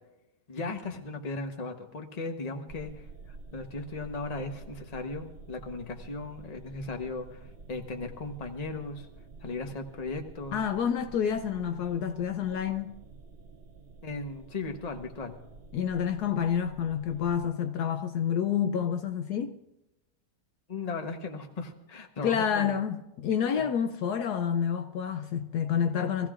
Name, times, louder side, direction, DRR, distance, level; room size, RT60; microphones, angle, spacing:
voice 1, 0.5-9.1 9.4-10.6 14.0-15.4 20.7-22.7, left 3 dB, 30° left, 1.0 m, -37 dB
sound 1, 2.7-17.4, right 4 dB, 50° right, 0.7 m, -49 dB
voice 2, 10.5-13.0 15.7-19.5 22.2-26.3, left 8 dB, 70° left, 1.1 m, -28 dB
23.5 x 15.5 x 2.5 m
omnidirectional pair, 1.9 m